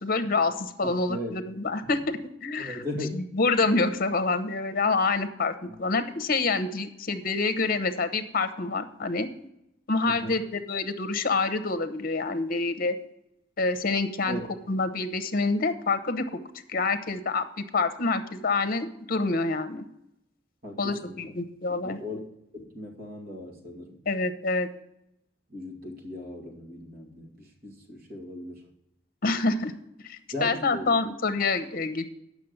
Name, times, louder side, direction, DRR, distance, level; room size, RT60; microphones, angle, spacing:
voice 1, 0.0-2.8 3.1-5.5 5.8-9.3 9.9-12.9 13.6-14.4 14.7-16.4 16.7-19.8 20.8-22.0 24.1-24.7 29.2-29.7 30.0-32.1, left 3 dB, 50° left, 10 dB, 0.9 m, -27 dB
voice 2, 0.8-1.4 2.6-3.1 5.7-5.8 10.0-10.4 14.3-14.5 20.6-21.3 21.7-22.2 22.5-24.0 25.5-28.6 30.3-31.0, left 1 dB, 55° right, 1 dB, 2.3 m, -38 dB
8.4 x 6.2 x 7.9 m, 0.81 s
head